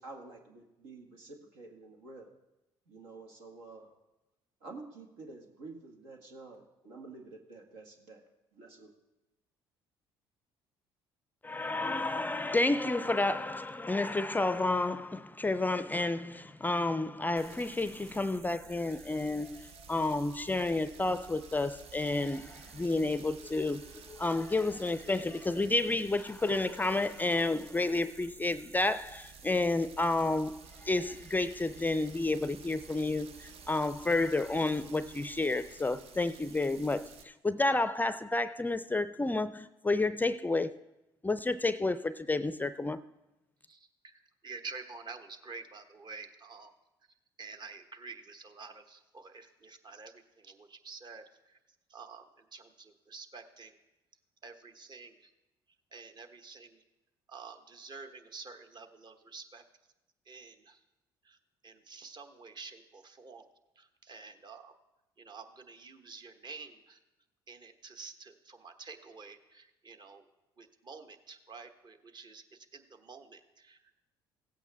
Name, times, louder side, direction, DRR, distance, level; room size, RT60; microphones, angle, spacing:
voice 1, 0.0-2.3 2.9-3.9 4.6-8.2 8.5-8.9, right 3 dB, 85° right, 1.7 m, -49 dB
voice 2, 11.4-40.8 41.2-43.0, left 2 dB, 15° left, 0.4 m, -30 dB
sound 1, 17.4-37.2, right 6 dB, 60° right, 0.8 m, -52 dB
voice 3, 43.7-46.7 47.4-51.6 51.9-52.3 52.5-53.7 54.4-55.1 55.9-56.8 57.3-59.6 60.3-60.8 61.3-61.4 61.6-63.4 63.8-64.7 65.2-67.0 67.5-70.2 70.6-72.4 72.7-73.8, right 4 dB, 40° right, 1.2 m, -49 dB
16.5 x 8.2 x 3.5 m
hypercardioid pair, 60°, 12 cm